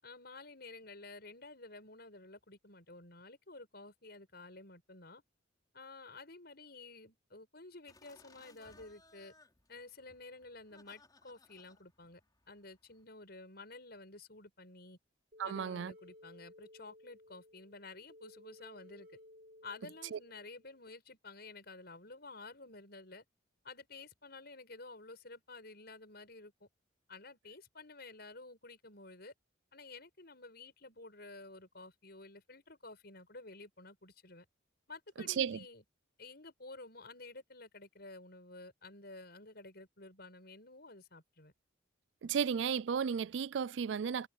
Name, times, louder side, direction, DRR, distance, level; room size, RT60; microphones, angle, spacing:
voice 1, 0.0-5.2 5.7-9.3 9.7-12.2 12.5-15.0 15.4-19.1 19.6-23.2 23.6-26.7 27.1-29.3 29.7-34.5 34.9-35.8 36.2-41.5, left 3 dB, 55° left, 7.3 m, -52 dB
sound 1, 7.9-13.0, left 2 dB, 20° left, 4.1 m, -64 dB
sound 2, 15.3-20.9, left 1 dB, 50° right, 2.8 m, -59 dB
voice 2, 15.4-15.9 20.1-20.2 35.4-35.6 42.2-44.3, right 7 dB, 70° right, 0.4 m, -34 dB
head